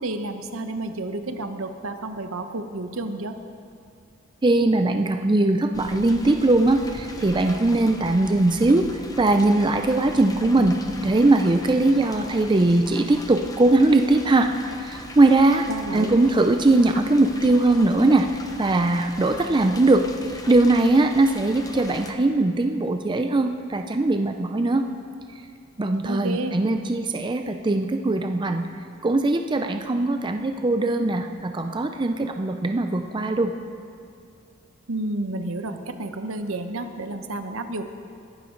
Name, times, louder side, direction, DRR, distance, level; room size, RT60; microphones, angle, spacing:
voice 1, 0.0-3.4 15.7-16.2 26.0-26.6 34.9-37.8, right 2 dB, 75° right, 8 dB, 1.0 m, -30 dB
voice 2, 4.4-8.9 9.2-10.8 11.0-14.5 14.8-15.7 15.9-18.3 18.6-20.0 20.5-24.8 25.8-28.6 29.0-33.5, right 2 dB, 20° right, 6 dB, 0.5 m, -20 dB
sound 1, 5.7-22.1, left 1 dB, 20° left, 0.9 m, -40 dB
21.0 x 12.0 x 3.9 m, 2.4 s
head